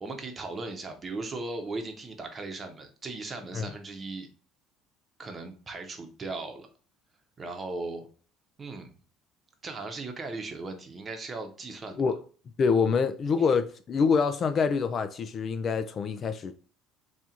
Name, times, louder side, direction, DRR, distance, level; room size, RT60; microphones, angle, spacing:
voice 1, 0.0-4.3 5.2-6.7 7.4-8.1 8.6-8.9 9.6-12.0, right 3 dB, 25° right, 0.8 m, -37 dB
voice 2, 12.6-16.5, left 5 dB, 35° left, 0.3 m, -26 dB
4.3 x 2.4 x 3.7 m
cardioid pair, 145°, 0 cm